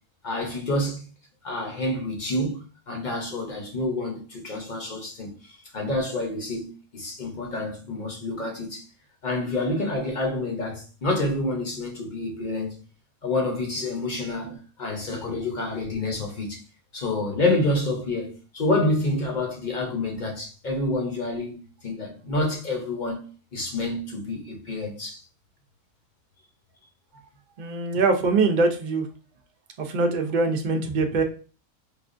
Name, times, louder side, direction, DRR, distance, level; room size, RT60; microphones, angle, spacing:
voice 1, 0.2-1.0 1.4-8.8 9.2-12.8 13.2-16.6 16.9-23.2 23.5-25.2, left 2 dB, 40° left, 0.9 m, -28 dB
voice 2, 27.6-29.1 29.8-31.2, right 3 dB, 50° right, 0.6 m, -23 dB
4.8 x 2.3 x 2.5 m
omnidirectional pair, 1.3 m